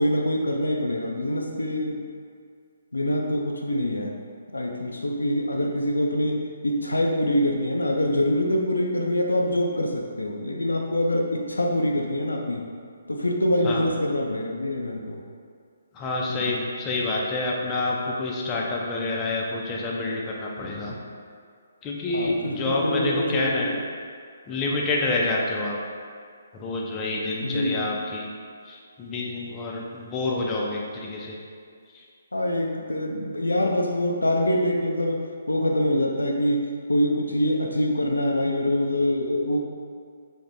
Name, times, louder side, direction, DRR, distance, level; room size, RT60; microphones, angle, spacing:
voice 1, 0.0-2.0 2.9-4.1 4.5-12.6 13.1-15.2 16.3-16.6 22.1-23.7 27.4-27.8 32.3-39.6, left 1 dB, 85° left, 1 dB, 0.4 m, -25 dB
voice 2, 15.9-21.0 21.8-23.7 24.5-25.8 26.5-28.3 28.7-31.4, left 2 dB, 20° left, -3 dB, 0.4 m, -28 dB
3.2 x 2.1 x 2.6 m, 2.1 s
figure-of-eight pair, 140°, 0 cm